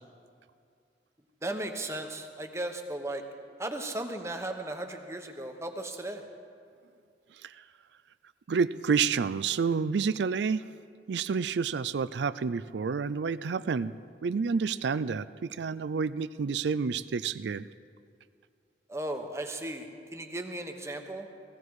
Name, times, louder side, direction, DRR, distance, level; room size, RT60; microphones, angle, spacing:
voice 1, 1.4-3.2 3.6-6.2 18.9-21.3, right 1 dB, 15° right, 5 dB, 1.0 m, -36 dB
voice 2, 8.5-10.6 11.1-14.0 14.2-17.7, right 5 dB, 75° right, 15 dB, 0.4 m, -29 dB
17.0 x 16.0 x 4.8 m, 2.4 s
head